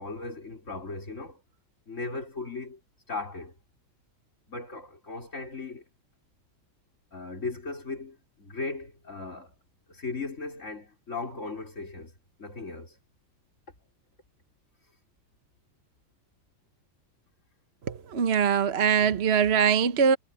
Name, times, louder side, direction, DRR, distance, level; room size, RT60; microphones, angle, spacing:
voice 1, 0.0-1.4 1.9-2.8 3.1-3.5 4.5-5.8 7.1-9.5 9.9-12.1 12.4-13.0, left 3 dB, 45° left, 4.5 m, -37 dB
voice 2, 17.9-20.2, right 7 dB, 45° right, 1.1 m, -22 dB
omnidirectional pair, 1.8 m